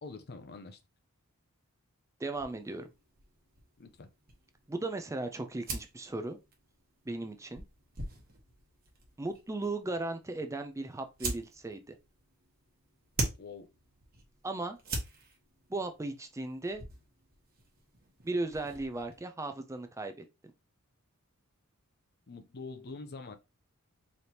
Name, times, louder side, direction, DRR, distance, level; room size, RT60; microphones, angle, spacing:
voice 1, 0.0-0.8 3.8-4.1 13.4-13.7 22.3-23.4, left 3 dB, 50° left, 0.7 m, -45 dB
voice 2, 2.2-2.9 4.7-6.4 7.1-7.6 9.2-12.0 14.4-14.8 15.7-16.8 18.2-20.2, right 2 dB, 15° right, 0.4 m, -36 dB
sound 1, 2.3-19.2, right 2 dB, 45° right, 1.2 m, -44 dB
4.2 x 3.3 x 2.8 m
head